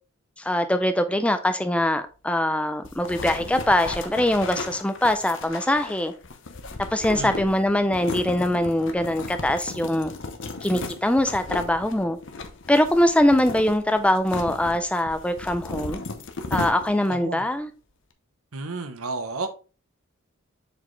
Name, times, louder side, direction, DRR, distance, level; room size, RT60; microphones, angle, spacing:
voice 1, 0.4-6.1 6.9-10.1 10.6-12.2 12.7-16.0 16.5-17.7, left 1 dB, 5° left, 0.4 m, -22 dB
sound 1, 2.8-17.2, left 3 dB, 60° left, 0.8 m, -35 dB
voice 2, 7.1-7.6 17.1-17.4 18.5-19.5, right 3 dB, 90° right, 1.0 m, -32 dB
7.2 x 4.2 x 3.3 m
head